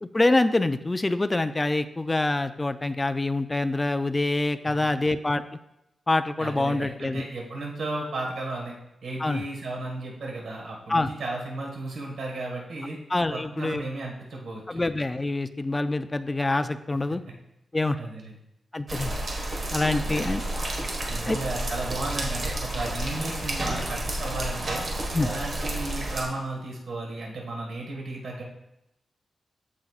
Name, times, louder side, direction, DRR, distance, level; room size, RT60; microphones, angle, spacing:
voice 1, 0.0-5.4 6.1-7.2 9.2-9.4 10.9-11.1 13.1-13.8 14.7-17.2 17.7-18.0 18.7-19.1 19.7-20.4 21.3-21.4 25.1-25.3, left 2 dB, 15° left, 10 dB, 0.3 m, -25 dB
voice 2, 6.4-8.7 9.0-13.0 13.3-14.8 18.0-18.4 20.0-20.4 21.1-24.8 25.2-28.4, right 2 dB, 85° right, -1 dB, 1.6 m, -34 dB
sound 1, 18.9-26.2, right 1 dB, 45° right, 1.4 m, -31 dB
14.5 x 5.3 x 2.4 m, 0.87 s
wide cardioid pair, 170°, 0 cm